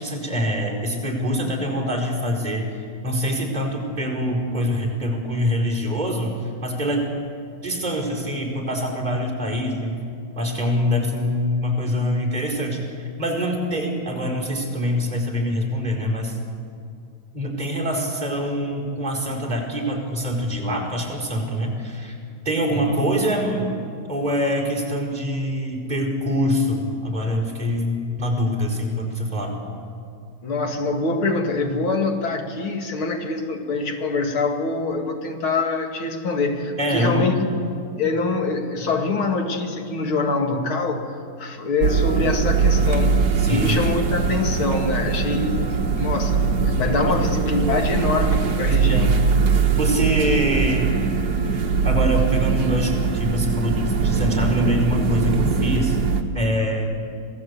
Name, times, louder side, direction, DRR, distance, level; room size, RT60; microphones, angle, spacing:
voice 1, 0.0-2.7 3.0-6.4 6.6-7.1 7.6-10.0 10.3-12.8 13.2-16.3 17.3-22.2 22.4-23.7 24.1-29.5 36.8-37.4 43.4-43.8 47.1-47.2 48.8-49.1 49.8-51.0 51.8-56.0 56.3-56.9, equal, 20° right, -2 dB, 4.9 m, -24 dB
voice 2, 30.4-37.6 38.0-41.1 41.4-45.7 45.9-49.3, left 3 dB, 75° left, 4 dB, 2.8 m, -24 dB
sound 1, 41.8-56.2, right 5 dB, 50° right, 1.8 m, -21 dB
27.0 x 18.0 x 8.3 m, 2.3 s
omnidirectional pair, 2.3 m